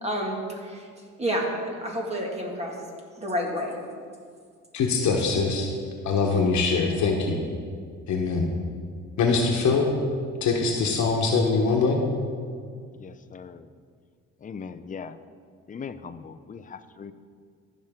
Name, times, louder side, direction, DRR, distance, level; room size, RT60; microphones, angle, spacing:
voice 1, 0.0-0.9 1.2-2.7 3.2-3.8, equal, 20° right, 0 dB, 2.0 m, -29 dB
voice 2, 4.7-5.7 6.0-7.4 8.1-8.5 9.2-9.9 10.4-12.0, left 4 dB, 70° left, 0 dB, 1.2 m, -23 dB
voice 3, 13.0-13.7 14.4-15.2 15.7-17.1, left 6 dB, 25° left, 11 dB, 0.5 m, -39 dB
15.0 x 6.0 x 3.7 m, 2.1 s
cardioid pair, 90°, 30 cm